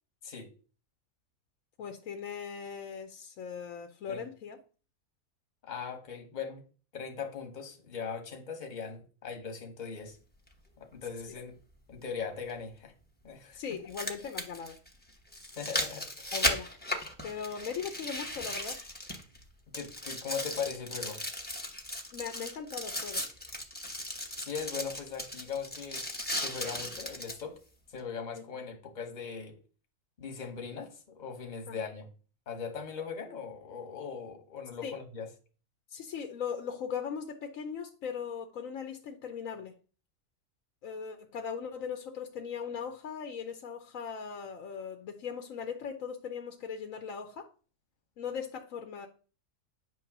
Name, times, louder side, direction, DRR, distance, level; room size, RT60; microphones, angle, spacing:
voice 1, 1.8-4.6 13.5-14.8 16.3-16.7 17.2-18.8 22.1-23.2 28.3-28.4 31.7-31.8 34.8-34.9 35.9-39.7 40.8-47.5 48.2-49.1, left 7 dB, 65° left, 1.0 m, -39 dB
voice 2, 5.6-6.6 6.9-10.2 10.8-11.5 11.9-12.9 13.2-13.6 15.6-16.4 19.7-21.2 24.4-26.0 26.4-27.5 27.9-29.5 30.2-32.1 32.5-35.3, left 6 dB, 35° left, 1.2 m, -39 dB
sound 1, 10.5-10.6 12.5-12.6 13.7-19.4 19.7-27.4 28.0-28.1, left 1 dB, 10° left, 0.7 m, -36 dB
9.1 x 3.1 x 5.9 m
omnidirectional pair, 1.6 m